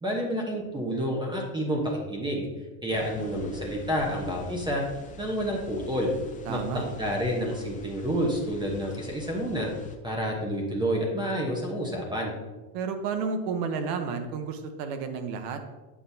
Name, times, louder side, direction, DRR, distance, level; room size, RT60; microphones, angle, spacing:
voice 1, 0.0-2.4 2.8-4.8 5.2-6.1 6.5-9.7 10.0-12.3, equal, 10° right, -1 dB, 1.0 m, -29 dB
sound 1, 2.9-10.0, left 3 dB, 20° left, 0.5 m, -46 dB
voice 2, 6.5-6.9 12.7-15.6, right 5 dB, 65° right, 7 dB, 1.0 m, -31 dB
8.5 x 5.5 x 2.7 m, 1.2 s
supercardioid pair, 130°, 47 cm